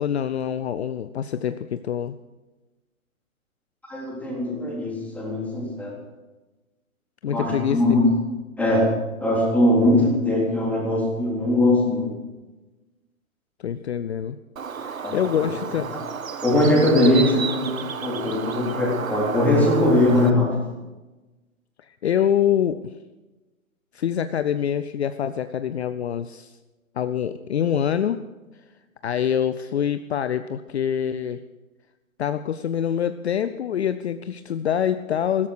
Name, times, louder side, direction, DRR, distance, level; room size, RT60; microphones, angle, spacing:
voice 1, 0.0-2.2 7.2-8.0 13.6-14.4 14.8-15.9 21.9-22.9 23.9-26.5 27.0-28.2 29.0-31.4 32.2-35.5, left 9 dB, 50° left, 11 dB, 0.7 m, -25 dB
voice 2, 3.9-6.0 7.3-8.1 8.6-8.9 9.2-12.1 15.0-15.5 16.4-20.6, left 1 dB, 5° left, -3 dB, 3.7 m, -21 dB
Bird, 14.6-20.3, right 6 dB, 70° right, 1.2 m, -32 dB
16.5 x 13.5 x 6.3 m, 1.1 s
figure-of-eight pair, 125°, 42 cm